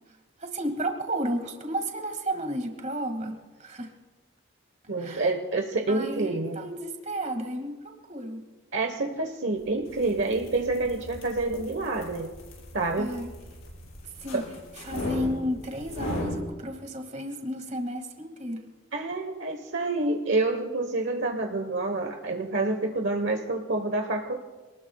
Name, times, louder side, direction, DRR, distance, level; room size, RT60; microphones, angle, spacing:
voice 1, 0.4-3.9 5.0-5.3 5.9-8.5 13.0-13.3 14.2-14.4 14.8-18.6, right 1 dB, 35° right, 4 dB, 2.2 m, -32 dB
voice 2, 4.9-6.6 8.7-12.3 12.7-13.1 14.3-14.4 18.9-24.4, right 2 dB, 55° right, 4 dB, 1.2 m, -28 dB
sound 1, 9.7-16.5, equal, 75° left, 6.3 m, -38 dB
26.5 x 20.0 x 2.4 m, 1.3 s
head